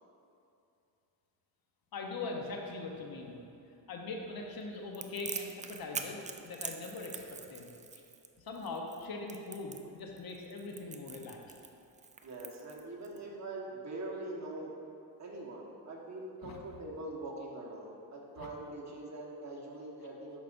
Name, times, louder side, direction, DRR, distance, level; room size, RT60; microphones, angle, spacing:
voice 1, 1.9-3.4 3.9-7.2 7.5-7.7 8.4-11.5 16.4-16.6 18.4-18.5, left 3 dB, 55° left, 1 dB, 1.1 m, -41 dB
Crackle, 4.9-13.2, right 5 dB, 20° right, 0.4 m, -44 dB
voice 2, 12.2-14.7 15.2-20.4, right 2 dB, 40° right, -2 dB, 1.5 m, -43 dB
11.5 x 5.2 x 2.6 m, 2.7 s
cardioid pair, 80°, 44 cm